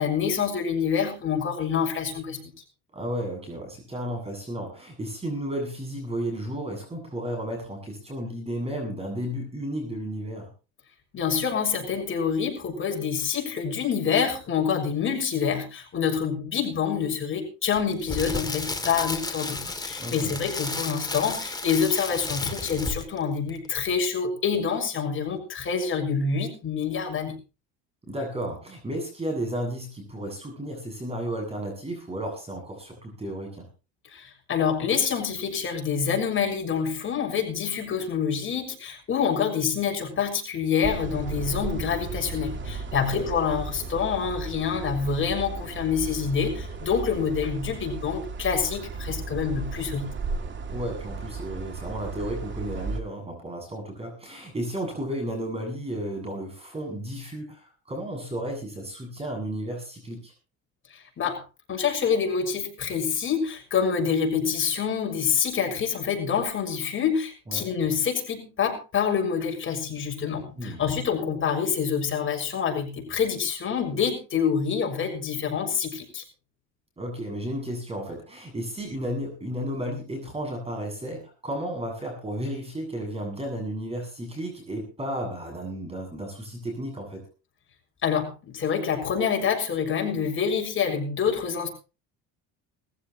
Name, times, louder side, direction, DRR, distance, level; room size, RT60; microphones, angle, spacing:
voice 1, 0.0-2.4 11.1-27.4 34.1-50.1 60.9-61.4 61.7-76.2 88.0-91.7, left 6 dB, 35° left, 2 dB, 6.5 m, -27 dB
voice 2, 2.9-10.5 20.0-20.4 28.1-33.7 43.0-43.3 50.7-60.3 67.5-67.7 70.6-70.8 77.0-87.2, equal, 20° right, 3 dB, 8.0 m, -33 dB
Crackle, 17.7-23.2 23.5-23.7, left 3 dB, 10° left, 2.9 m, -33 dB
sound 1, 40.8-53.0, right 4 dB, 35° right, 2.8 m, -35 dB
20.5 x 15.5 x 3.1 m, 0.33 s
cardioid pair, 115°, 33 cm